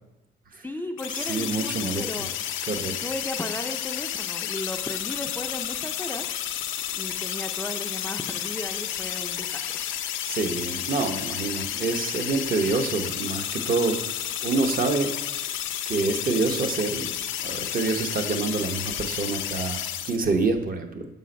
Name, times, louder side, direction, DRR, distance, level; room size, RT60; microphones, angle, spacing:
voice 1, 0.6-2.3 3.0-6.3 6.9-9.8, left 1 dB, 10° left, 4 dB, 0.4 m, -35 dB
sound 1, 1.0-20.2, left 10 dB, 80° left, 0.5 m, -31 dB
voice 2, 1.1-2.3 2.6-3.0 10.3-14.0 14.4-15.1 15.8-17.1 17.4-21.1, right 3 dB, 45° right, 5 dB, 0.9 m, -27 dB
5.7 x 5.6 x 5.1 m, 0.99 s
cardioid pair, 90°, 20 cm